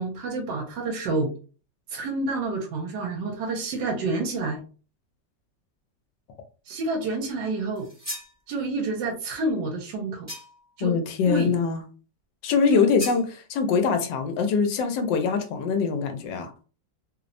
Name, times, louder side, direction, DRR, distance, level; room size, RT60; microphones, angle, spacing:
voice 1, 0.0-1.3 1.9-4.6 6.7-7.9 8.5-10.3 10.8-11.0 11.3-11.6 12.7-12.9, right 3 dB, 85° right, 2 dB, 1.2 m, -28 dB
sound 1, 7.7-8.4 10.3-10.7 13.0-13.3, equal, 15° right, 0.6 m, -37 dB
voice 2, 10.8-11.8 12.4-16.5, left 5 dB, 85° left, 6 dB, 1.2 m, -23 dB
3.1 x 2.0 x 2.5 m, 0.37 s
omnidirectional pair, 1.9 m